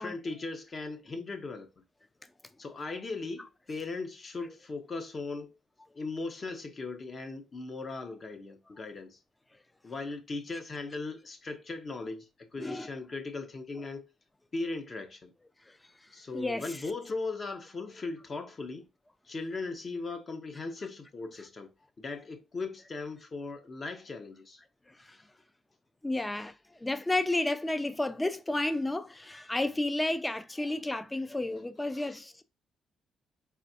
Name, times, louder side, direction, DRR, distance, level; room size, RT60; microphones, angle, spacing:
voice 1, 0.0-1.8 2.6-5.5 5.9-9.2 9.8-14.1 14.5-15.3 16.1-18.9 19.2-21.7 22.0-24.6 31.9-32.2, left 3 dB, 40° left, 1.0 m, -38 dB
voice 2, 16.3-16.8 24.9-25.2 26.0-26.5 26.8-32.4, left 2 dB, 15° left, 0.5 m, -31 dB
4.2 x 3.4 x 2.8 m
cardioid pair, 90°, 0 cm